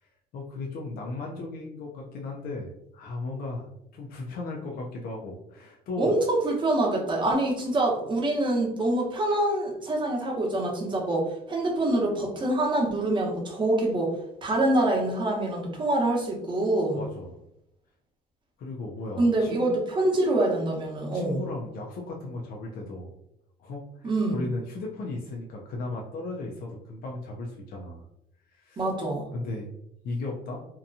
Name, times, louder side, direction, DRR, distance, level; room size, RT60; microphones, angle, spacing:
voice 1, 0.0-6.2 16.9-17.4 18.6-19.6 21.1-23.1 23.6-28.0 28.5-28.8 29.3-29.7 30.0-30.7, left 2 dB, 60° left, -1 dB, 0.5 m, -36 dB
voice 2, 6.0-14.1 14.4-17.0 19.2-21.4 24.0-24.4 28.8-29.3, right 2 dB, 30° right, -1 dB, 0.9 m, -25 dB
2.8 x 2.2 x 2.6 m, 0.79 s
cardioid pair, 110°, 17 cm